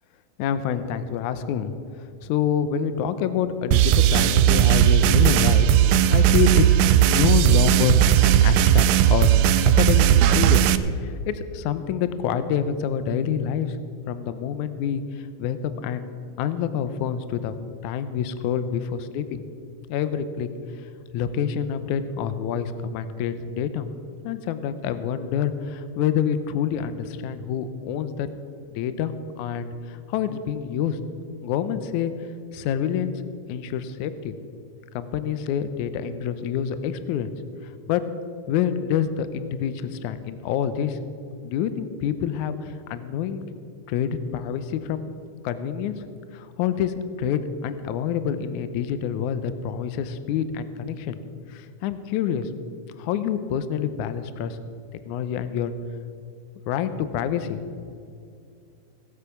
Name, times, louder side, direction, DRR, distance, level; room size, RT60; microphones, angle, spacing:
voice 1, 0.4-1.7 2.2-5.7 6.1-9.3 9.6-10.7 11.0-13.8 14.1-15.6 15.8-16.1 16.4-17.6 17.8-19.4 19.9-20.5 21.1-23.9 24.2-28.3 28.8-29.1 29.4-31.0 31.4-32.1 32.5-33.1 33.5-34.3 34.9-37.3 37.9-38.0 38.5-41.0 41.4-43.4 43.9-45.1 45.4-46.1 46.3-51.2 51.5-52.5 53.0-54.6 55.1-55.7 56.7-57.6 57.9-58.0, left 8 dB, 80° left, 12 dB, 1.8 m, -27 dB
sound 1, 3.7-10.8, right 11 dB, 85° right, 1.9 m, -17 dB
18.0 x 8.3 x 5.8 m, 2.5 s
omnidirectional pair, 4.2 m